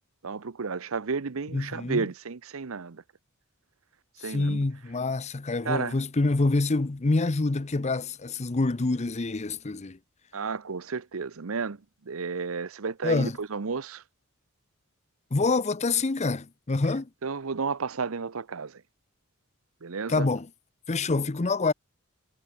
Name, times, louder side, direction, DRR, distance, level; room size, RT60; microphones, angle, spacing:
voice 1, 0.2-3.0 4.2-4.6 5.6-6.0 10.3-11.8 12.1-14.0 17.2-18.7 19.8-20.3, right 5 dB, 80° right, 0.8 m, -32 dB
voice 2, 1.5-2.0 4.2-10.0 13.0-13.4 15.3-17.1 20.1-20.5 20.9-21.7, left 3 dB, 30° left, 0.7 m, -26 dB
head